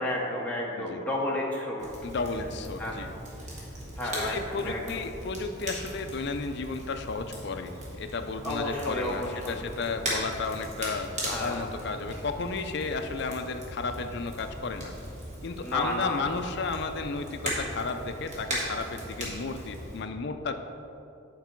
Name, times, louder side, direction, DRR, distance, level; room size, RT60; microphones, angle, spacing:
voice 1, 0.0-1.9 2.8-3.1 4.0-4.8 8.4-9.6 11.3-11.7 15.6-16.3, left 1 dB, 5° left, -3 dB, 0.6 m, -32 dB
Crackle, 1.8-20.0, right 1 dB, 35° right, 1.5 m, -38 dB
voice 2, 2.0-3.1 4.1-14.9 15.4-20.5, left 4 dB, 55° left, 7 dB, 0.4 m, -33 dB
8.1 x 4.6 x 4.5 m, 2.7 s
head